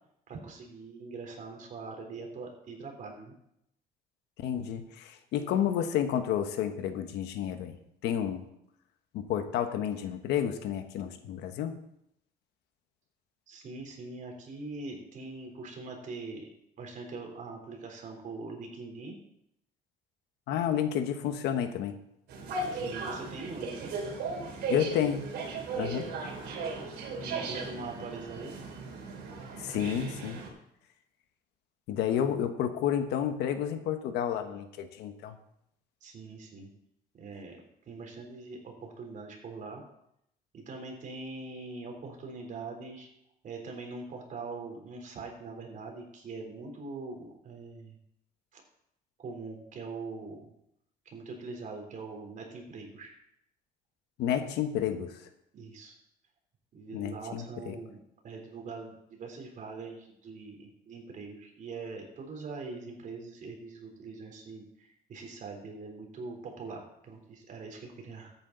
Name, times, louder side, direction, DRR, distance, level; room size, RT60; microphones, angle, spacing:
voice 1, 0.3-3.3 13.5-16.5 16.8-19.2 22.7-23.9 27.2-28.6 32.0-32.2 36.0-36.7 37.1-37.6 37.9-39.8 40.5-43.1 43.4-48.0 48.5-48.6 49.2-50.5 51.1-53.1 55.5-55.9 56.7-58.0 58.2-68.3, right 3 dB, 50° right, 2 dB, 3.6 m, -42 dB
voice 2, 4.4-7.8 8.0-8.5 9.1-11.8 20.5-22.0 24.7-25.4 25.8-26.1 29.6-30.4 31.9-35.4 54.2-55.2 56.9-57.8, left 9 dB, 85° left, 8 dB, 1.3 m, -30 dB
sound 1, 22.3-30.5, right 3 dB, 75° right, 3.3 m, -37 dB
13.5 x 9.0 x 4.0 m, 0.77 s
cardioid pair, 110°, 17 cm